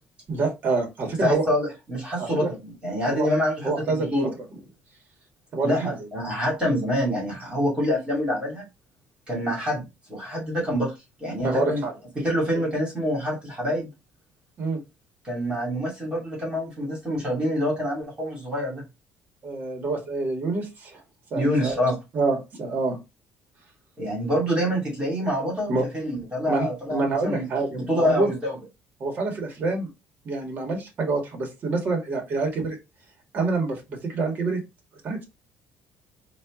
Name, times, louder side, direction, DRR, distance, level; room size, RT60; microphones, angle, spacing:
voice 1, 0.3-1.4 2.2-2.5 3.1-3.3 3.6-4.1 5.5-5.9 11.4-11.9 14.6-14.8 19.4-21.0 21.3-21.8 22.1-23.0 25.7-25.8 26.5-28.3 29.0-29.9 30.2-32.8 33.3-33.8 34.1-34.6 35.0-35.3, right 3 dB, 40° right, 2 dB, 1.6 m, -26 dB
voice 2, 1.2-4.3 5.6-8.7 9.3-9.8 10.1-10.9 11.2-11.8 12.2-13.9 15.2-18.8 21.3-21.9 24.0-28.6, equal, 20° right, -3 dB, 2.4 m, -26 dB
4.3 x 2.6 x 3.7 m, 0.24 s
cardioid pair, 145°, 5 cm